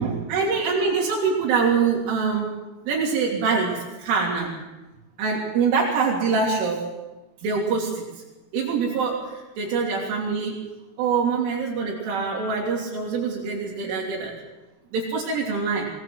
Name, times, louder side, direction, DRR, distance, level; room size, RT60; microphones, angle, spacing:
voice 1, 0.0-2.5 2.9-4.5 5.2-6.8 7.4-8.0 8.5-10.6 11.0-14.3 14.9-15.9, right 5 dB, 75° right, -4 dB, 5.7 m, -24 dB
23.0 x 18.5 x 7.8 m, 1.1 s
omnidirectional pair, 5.7 m